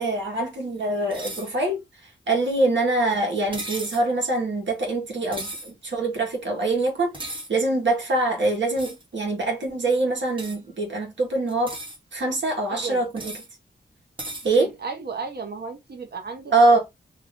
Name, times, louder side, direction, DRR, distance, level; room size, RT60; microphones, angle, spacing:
voice 1, 0.0-1.8 2.3-11.8 12.1-13.3 14.4-14.7 16.5-16.8, right 2 dB, 75° right, 1.3 m, -24 dB
sound 1, 1.1-1.5 3.5-4.1 5.3-5.7 7.1-7.5 8.8-9.0 10.4-10.6 11.5-12.0 13.2-13.5 14.2-14.5, right 1 dB, 25° right, 1.0 m, -35 dB
voice 2, 12.7-13.0 14.6-16.5, right 5 dB, 55° right, 0.7 m, -33 dB
2.7 x 2.5 x 3.4 m
wide cardioid pair, 105°, 19 cm